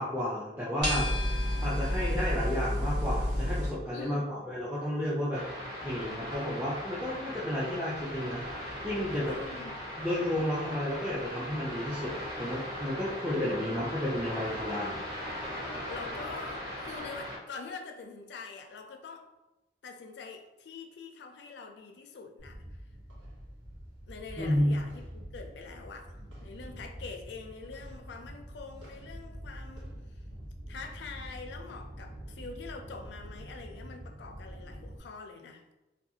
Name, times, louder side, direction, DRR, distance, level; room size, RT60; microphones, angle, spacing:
voice 1, 0.0-5.4 5.8-9.3 10.0-15.0 24.4-24.8, left 1 dB, 10° right, -8 dB, 0.4 m, -32 dB
sound 1, 0.8-3.7, left 1 dB, 65° right, 1.4 m, -29 dB
voice 2, 3.9-4.4 8.9-9.8 15.8-19.3 19.8-22.6 24.1-25.0 25.3-30.2 30.7-35.7, left 4 dB, 65° left, 4 dB, 0.4 m, -45 dB
sound 2, 5.3-17.4, equal, 30° right, 1.1 m, -39 dB
sound 3, 22.4-35.0, equal, 85° right, 0.9 m, -45 dB
2.4 x 2.3 x 2.7 m, 1.0 s
head